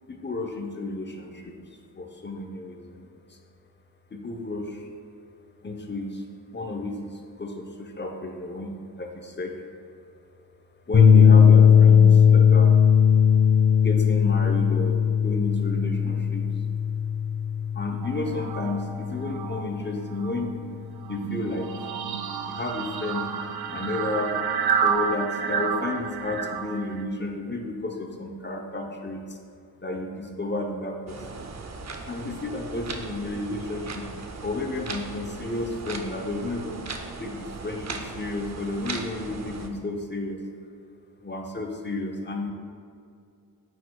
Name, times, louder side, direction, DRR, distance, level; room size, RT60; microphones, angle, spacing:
voice 1, 0.1-1.6 1.9-3.4 4.1-4.9 5.6-6.2 6.5-8.7 9.0-9.5 10.9-12.7 13.8-16.5 17.7-20.5 21.1-21.7 22.5-23.3 23.7-24.3 24.8-29.4 29.8-31.6 32.1-34.1 34.4-36.9 37.2-40.4 41.2-42.5, left 2 dB, 30° left, 3 dB, 0.9 m, -32 dB
sound 1, 10.9-19.4, left 7 dB, 50° left, 1.0 m, -18 dB
sound 2, 18.0-19.8 20.1-27.0, right 7 dB, 90° right, 0.5 m, -30 dB
sound 3, 31.1-39.7, right 4 dB, 45° right, 0.7 m, -38 dB
9.0 x 6.5 x 2.3 m, 2.4 s
cardioid pair, 75°, 37 cm